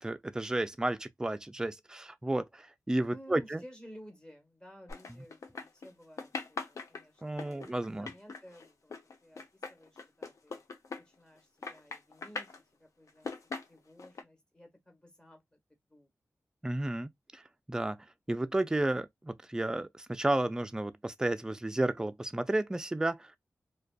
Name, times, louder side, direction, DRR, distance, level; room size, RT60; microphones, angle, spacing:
voice 1, 0.0-3.6 7.2-8.1 16.6-17.4 17.7-23.3, right 1 dB, 10° right, 0.3 m, -32 dB
voice 2, 3.1-7.6 7.9-8.9 9.2-9.4 9.7-10.6 11.0-12.5 12.8-13.3 13.7-15.6 15.9-16.1, equal, 15° left, 1.2 m, -54 dB
sound 1, 4.9-5.9 6.2-11.4 11.6-12.6 13.1-14.2, left 4 dB, 70° left, 0.6 m, -41 dB
2.4 x 2.2 x 2.3 m
cardioid pair, 70°, 6 cm